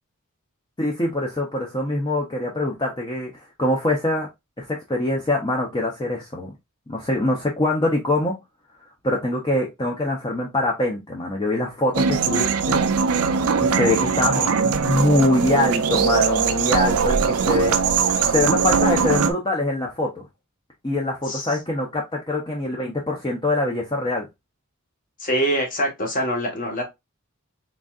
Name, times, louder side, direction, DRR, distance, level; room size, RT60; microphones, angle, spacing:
voice 1, 0.8-3.3 3.6-4.3 4.6-6.5 6.9-8.3 9.0-12.8 13.6-17.7 18.3-20.1 20.8-24.3, left 2 dB, 20° left, 0.6 m, -23 dB
sound 1, 11.9-19.3, right 5 dB, 90° right, 0.5 m, -21 dB
voice 2, 21.2-21.6 25.2-26.8, equal, 40° left, 1.3 m, -24 dB
3.9 x 3.6 x 2.4 m
head